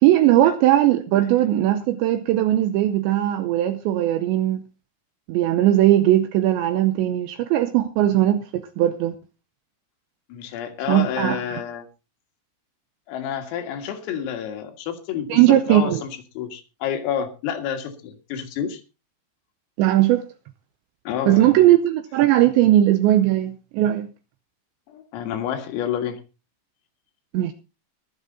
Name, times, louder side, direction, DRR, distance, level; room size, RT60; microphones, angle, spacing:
voice 1, 0.0-4.6 5.3-9.1 10.9-11.6 15.3-16.0 19.8-20.3 21.3-24.1 27.3-27.5, right 13 dB, 80° right, 2.6 m, -19 dB
voice 2, 10.3-11.9 13.1-16.1 16.4-18.8 21.1-21.6 24.9-26.2, left 9 dB, 80° left, 4.5 m, -29 dB
22.0 x 7.4 x 4.0 m
omnidirectional pair, 5.9 m